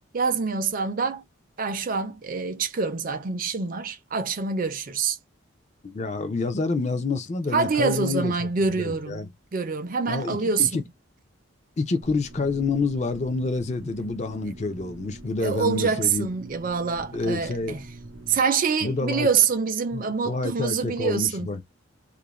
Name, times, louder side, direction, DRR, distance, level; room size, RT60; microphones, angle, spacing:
voice 1, 0.1-1.2 1.6-5.2 7.5-9.2 9.5-10.8 15.4-17.9 18.3-21.5, right 5 dB, 40° right, 0.5 m, -25 dB
voice 2, 5.8-8.5 8.8-9.3 10.1-10.8 11.8-16.3 17.1-17.8 18.8-19.3 19.9-21.6, left 3 dB, 35° left, 0.5 m, -28 dB
sound 1, 12.0-18.4, right 1 dB, 75° right, 0.8 m, -44 dB
2.4 x 2.1 x 3.0 m
head